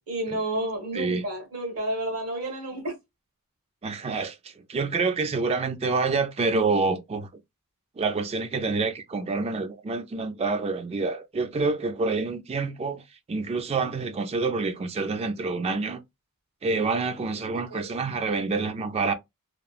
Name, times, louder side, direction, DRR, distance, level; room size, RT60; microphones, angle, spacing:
voice 1, 0.1-3.0 17.5-17.9, right 1 dB, 85° right, 1.3 m, -31 dB
voice 2, 3.8-7.3 8.0-13.0 13.3-16.0 16.6-19.1, right 4 dB, 30° right, 0.3 m, -27 dB
2.9 x 2.3 x 2.4 m
head